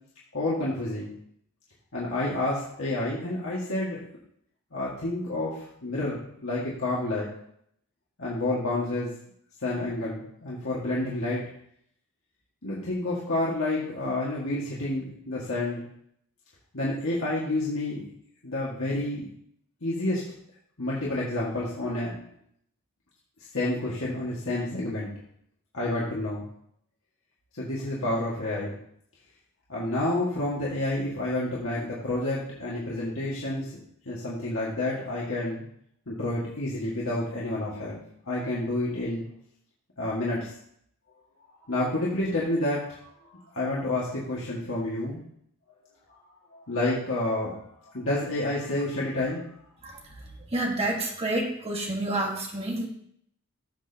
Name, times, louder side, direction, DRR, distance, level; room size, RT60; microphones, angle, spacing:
voice 1, 0.3-1.1 1.9-4.0 4.7-7.3 8.2-9.1 9.6-11.4 12.6-15.8 16.7-18.0 18.4-19.3 19.8-20.2 20.8-22.2 23.5-25.1 25.7-26.4 27.6-28.7 29.7-33.7 34.1-35.6 36.1-38.0 38.3-39.2 40.0-40.5 41.7-45.2 46.5-47.6 47.9-49.4, left 2 dB, 60° left, -7 dB, 2.0 m, -29 dB
voice 2, 50.5-52.9, right 1 dB, 25° right, 0 dB, 1.7 m, -28 dB
15.0 x 7.6 x 2.9 m, 0.69 s
head